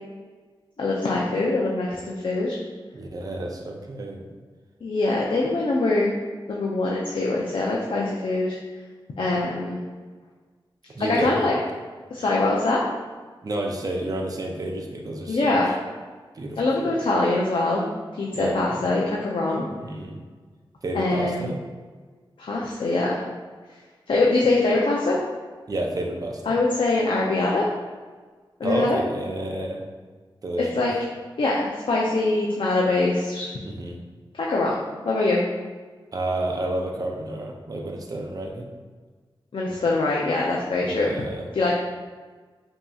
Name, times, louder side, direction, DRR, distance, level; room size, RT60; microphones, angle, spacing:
voice 1, 0.8-2.6 4.8-6.1 6.5-8.6 9.2-9.8 11.1-11.5 12.1-12.8 15.3-15.7 16.6-17.8 18.2-19.6 20.9-21.5 22.4-23.2 24.1-25.2 26.5-27.7 28.6-29.0 30.7-30.9 31.4-33.5 34.4-34.8 35.0-35.4 39.5-41.3 41.5-41.8, left 2 dB, 70° left, -4 dB, 0.5 m, -23 dB
voice 2, 2.9-4.2 10.9-11.5 13.4-15.8 16.3-16.9 18.3-18.9 19.5-20.2 20.8-21.6 25.7-26.5 28.6-29.8 30.4-30.9 33.6-33.9 36.1-38.7 40.8-41.5, right 1 dB, 45° right, 1 dB, 0.5 m, -30 dB
5.5 x 2.7 x 2.3 m, 1.4 s
wide cardioid pair, 95°, 9 cm